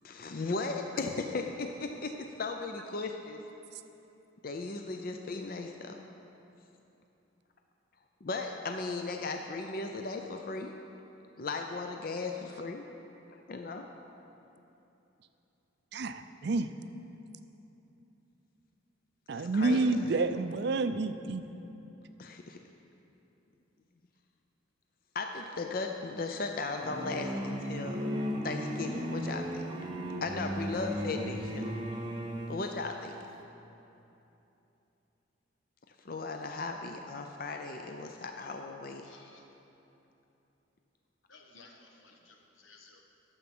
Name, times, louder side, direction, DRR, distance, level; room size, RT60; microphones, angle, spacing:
voice 1, 0.0-3.4 4.4-6.0 8.2-10.7 11.4-12.8 13.3-13.8 19.3-19.9 22.2-22.6 25.1-28.1 28.4-29.6 30.2-31.7 32.5-33.2 36.0-39.1, left 3 dB, 45° left, 4 dB, 0.5 m, -36 dB
voice 2, 15.9-16.7 19.3-21.4, right 3 dB, 55° right, 10 dB, 0.4 m, -29 dB
sound 1, 26.8-32.7, equal, 25° right, 0.8 m, -35 dB
voice 3, 39.0-39.4 41.3-43.0, left 3 dB, 75° left, 2 dB, 1.3 m, -57 dB
12.0 x 7.2 x 6.0 m, 3.0 s
head